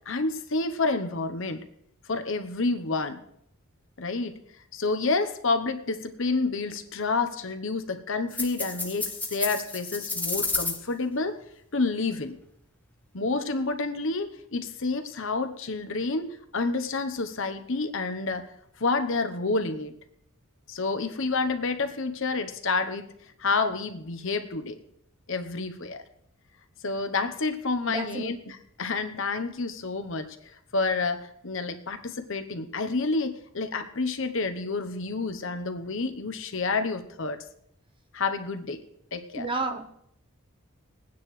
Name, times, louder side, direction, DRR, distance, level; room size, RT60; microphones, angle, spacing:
voice 1, 0.1-1.6 2.0-3.2 4.0-4.4 4.7-11.4 11.7-12.4 13.1-18.5 18.8-19.9 20.7-23.1 23.4-24.8 25.3-26.0 26.8-30.4 30.7-37.4 38.1-38.8 39.1-39.5, left 3 dB, 60° left, 9 dB, 0.9 m, -29 dB
sound 1, 8.3-10.8, left 3 dB, 5° left, 0.9 m, -31 dB
voice 2, 27.9-28.3 39.3-39.9, right 2 dB, 20° right, 6 dB, 0.9 m, -31 dB
22.5 x 9.5 x 3.2 m, 0.71 s
head